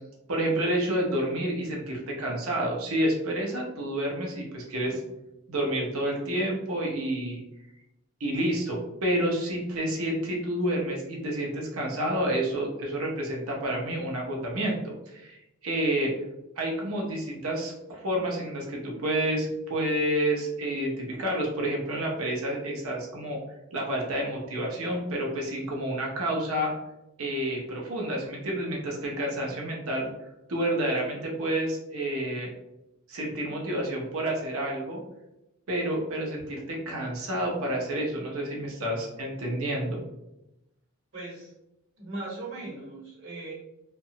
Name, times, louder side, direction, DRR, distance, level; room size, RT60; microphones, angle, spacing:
voice 1, 0.3-5.0 5.5-7.4 8.2-16.1 16.6-23.4 23.7-26.7 27.2-30.1 30.5-32.5 33.1-35.0 35.7-40.0, right 1 dB, 75° right, -1 dB, 0.7 m, -29 dB
voice 2, 41.1-41.5 42.0-43.5, right 2 dB, 55° right, -5 dB, 1.1 m, -38 dB
2.8 x 2.2 x 2.7 m, 0.90 s
head